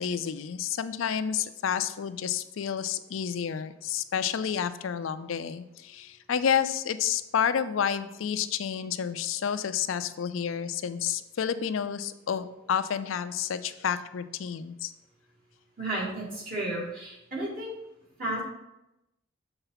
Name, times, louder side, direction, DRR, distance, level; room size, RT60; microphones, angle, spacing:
voice 1, 0.0-14.9, left 8 dB, 80° left, 11 dB, 0.4 m, -30 dB
voice 2, 15.8-17.7 18.2-18.4, right 1 dB, 45° right, -5 dB, 2.6 m, -32 dB
6.9 x 4.0 x 5.7 m, 0.91 s
head